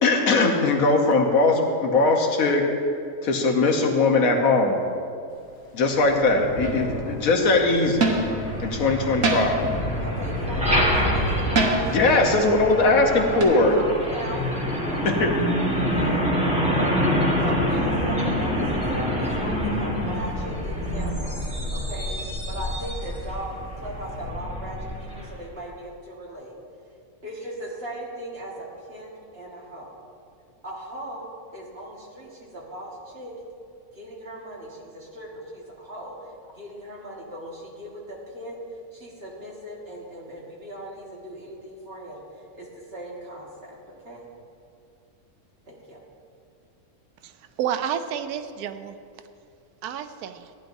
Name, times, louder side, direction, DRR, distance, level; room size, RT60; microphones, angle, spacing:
voice 1, 0.0-2.6 3.2-4.8 5.7-8.1 8.6-9.6 11.9-13.7 15.0-15.4, left 3 dB, 70° left, 2 dB, 1.4 m, -20 dB
Thunder / Rain, 5.4-22.0 22.3-22.8 23.0-23.2, equal, 35° left, 2.2 m, -34 dB
sound 1, 6.6-7.0 8.0-8.4 9.2-9.8 11.6-12.1 13.4-13.5, right 2 dB, 65° right, 1.5 m, -23 dB
Truck, 7.8-25.4, equal, 5° right, 1.4 m, -27 dB
voice 2, 10.0-13.0 13.3-14.5 14.7-15.4 15.7-17.0 17.4-21.4 21.7-22.2 22.5-26.5 27.2-29.9 30.6-33.3 33.9-38.6 38.9-42.2 42.5-43.8 44.0-44.3 45.7-46.0, right 1 dB, 45° right, -4 dB, 1.9 m, -38 dB
voice 3, 47.2-49.0 49.8-50.5, right 9 dB, 90° right, 9 dB, 1.1 m, -30 dB
15.0 x 10.5 x 2.7 m, 2.4 s
omnidirectional pair, 1.6 m